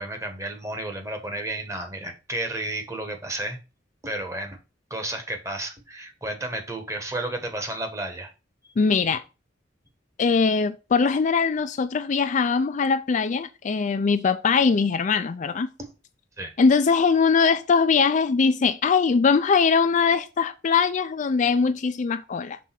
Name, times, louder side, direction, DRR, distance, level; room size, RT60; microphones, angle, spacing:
voice 1, 0.0-3.6 4.0-4.6 4.9-8.3 15.8-15.9 16.4-16.5, right 1 dB, 15° right, 1.2 m, -32 dB
voice 2, 8.8-9.2 10.2-15.7 16.6-22.6, left 5 dB, 40° left, 0.4 m, -21 dB
6.2 x 3.4 x 5.7 m
head